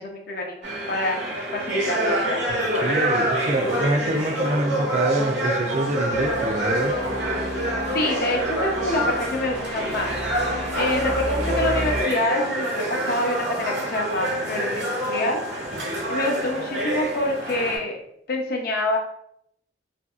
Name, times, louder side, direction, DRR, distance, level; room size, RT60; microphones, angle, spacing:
voice 1, 0.0-2.4 2.7-3.0 7.9-15.4 16.1-18.0 18.3-19.0, left 1 dB, 60° left, 1 dB, 0.6 m, -27 dB
sound 1, 0.6-17.8, right 1 dB, 75° right, 1.0 m, -27 dB
voice 2, 2.5-7.0, right 2 dB, 40° right, 4 dB, 0.3 m, -25 dB
sound 2, 6.1-12.0, equal, 10° left, 0.6 m, -32 dB
2.7 x 2.5 x 2.4 m, 0.72 s
head